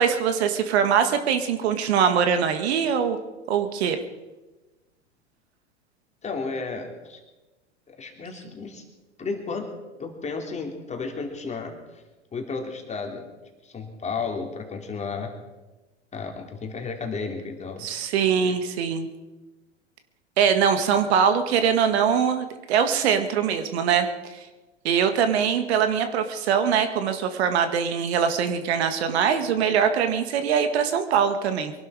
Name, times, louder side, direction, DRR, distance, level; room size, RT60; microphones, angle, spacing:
voice 1, 0.0-3.2 3.5-4.0 17.8-19.1 20.4-24.4 24.8-31.7, right 7 dB, 60° right, 8 dB, 1.7 m, -22 dB
voice 2, 6.2-7.2 7.9-8.8 9.2-9.7 10.0-12.0 12.3-13.3 13.6-15.3 16.1-17.9 18.4-18.6, left 4 dB, 20° left, 3 dB, 3.0 m, -33 dB
23.5 x 11.5 x 4.9 m, 1.1 s
hypercardioid pair, 100°, 36 cm